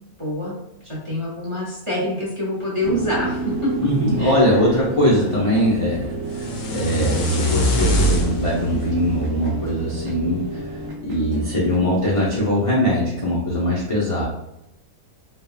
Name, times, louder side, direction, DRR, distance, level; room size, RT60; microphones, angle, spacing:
voice 1, 0.2-0.6 0.8-3.7 4.2-4.7 5.0-5.3 6.0-6.3, left 1 dB, 30° right, -5 dB, 0.6 m, -27 dB
sound 1, 2.8-10.9, right 2 dB, 55° right, 1.2 m, -31 dB
voice 2, 3.8-14.2, equal, 50° left, -8 dB, 0.3 m, -21 dB
sound 2, 5.4-13.1, equal, 90° right, 1.4 m, -38 dB
sound 3, 6.3-10.4, equal, 70° left, 0.8 m, -24 dB
3.5 x 2.1 x 2.3 m, 0.88 s
omnidirectional pair, 1.7 m